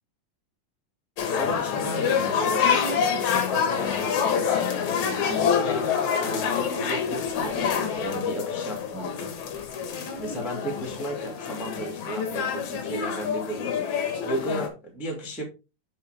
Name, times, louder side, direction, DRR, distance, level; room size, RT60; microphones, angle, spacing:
sound 1, 1.2-14.7, left 7 dB, 70° left, 1.9 m, -27 dB
voice 1, 1.3-4.7 5.0-5.9 6.2-7.6 8.0-9.3 10.2-13.7 14.2-15.4, right 1 dB, ahead, 1 dB, 0.7 m, -34 dB
7.9 x 5.3 x 3.5 m, 0.29 s
omnidirectional pair, 4.9 m